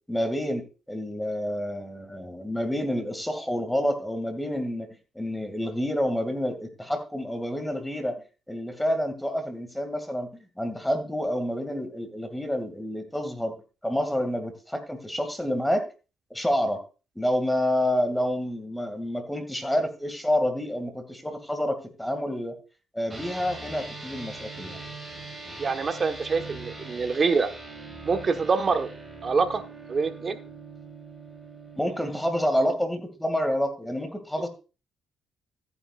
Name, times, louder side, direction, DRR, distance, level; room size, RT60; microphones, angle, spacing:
voice 1, 0.1-0.6 0.9-4.9 5.2-8.2 8.5-10.3 10.6-13.5 13.8-15.8 16.3-16.8 17.2-22.5 22.9-24.8 31.8-34.5, equal, 5° left, 8 dB, 2.3 m, -28 dB
sound 1, 23.1-32.6, right 3 dB, 10° right, 4.5 m, -42 dB
voice 2, 25.6-27.5 28.0-28.9 29.2-29.6 29.9-30.4, right 4 dB, 40° right, 7 dB, 1.3 m, -25 dB
14.5 x 9.6 x 2.5 m, 0.32 s
cardioid pair, 90°, 0 cm